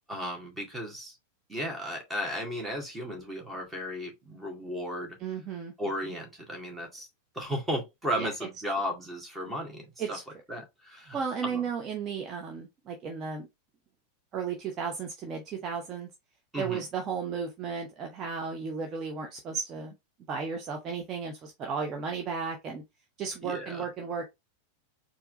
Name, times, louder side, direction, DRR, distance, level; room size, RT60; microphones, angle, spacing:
voice 1, 0.1-1.2 1.5-5.2 5.8-7.1 7.3-10.2 10.5-11.7 16.5-16.8 23.4-23.8, equal, 10° right, 2.0 m, -35 dB
voice 2, 5.2-5.7 8.2-8.3 10.0-10.2 11.1-13.5 14.3-16.1 16.6-19.9 20.3-22.8 23.2-24.3, right 6 dB, 30° right, 0.9 m, -34 dB
4.6 x 3.0 x 3.7 m
figure-of-eight pair, 90°, 0 cm